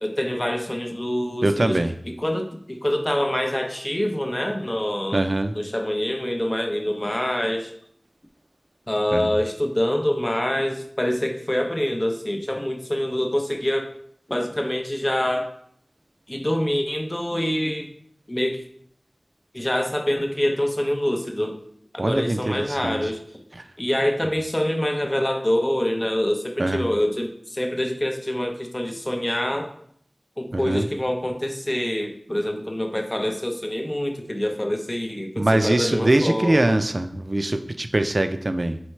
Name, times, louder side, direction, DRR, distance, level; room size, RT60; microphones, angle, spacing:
voice 1, 0.0-1.8 2.1-5.3 5.6-7.7 8.9-13.9 14.3-15.5 16.3-17.9 18.3-18.6 19.5-21.6 21.9-23.2 23.8-29.7 30.4-36.8, left 1 dB, 25° left, 5 dB, 0.5 m, -25 dB
voice 2, 1.4-2.0 5.1-5.6 9.1-9.3 22.0-23.0 23.6-23.7 26.6-26.9 30.5-30.9 35.4-38.8, right 1 dB, 50° right, 9 dB, 0.3 m, -22 dB
4.4 x 3.2 x 3.1 m, 0.65 s
wide cardioid pair, 50°, 0 cm